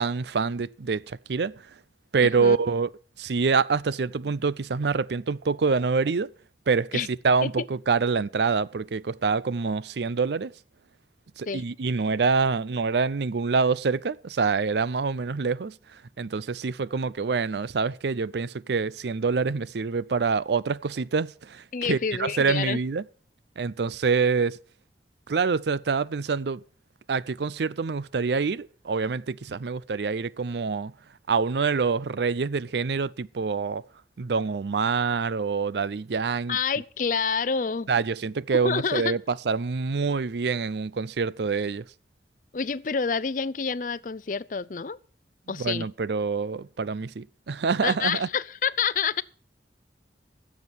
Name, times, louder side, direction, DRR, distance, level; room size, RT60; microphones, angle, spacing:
voice 1, 0.0-1.6 2.1-2.9 3.2-6.3 6.7-10.5 11.4-23.0 23.6-24.6 25.3-26.6 27.1-30.9 31.3-33.8 34.2-36.6 37.9-41.9 45.6-48.3, right 5 dB, 75° right, 0.5 m, -26 dB
voice 2, 21.7-22.8 36.5-37.9 38.6-39.2 42.5-45.0 45.5-45.9 47.8-49.2, left 6 dB, 45° left, 0.5 m, -28 dB
15.0 x 7.4 x 6.1 m
head